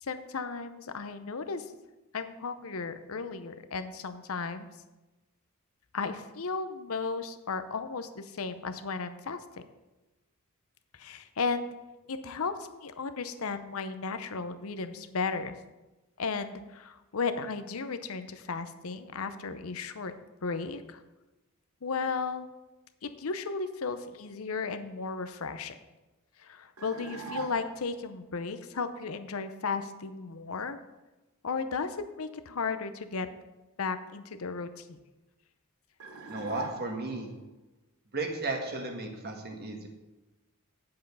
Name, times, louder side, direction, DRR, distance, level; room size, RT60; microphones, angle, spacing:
voice 1, 0.0-1.7 2.1-4.7 5.9-9.4 10.9-11.7 12.1-15.6 16.2-20.1 20.4-21.0 21.8-22.5 23.0-25.8 26.4-30.8 31.4-33.3 33.8-35.0, left 4 dB, 70° left, 10 dB, 0.7 m, -35 dB
sound 1, 26.8-27.9 36.0-37.3, right 3 dB, 70° right, 1.2 m, -41 dB
voice 2, 36.3-37.3 38.1-39.9, right 2 dB, 45° right, 3 dB, 1.5 m, -34 dB
8.9 x 7.7 x 5.5 m, 1.1 s
head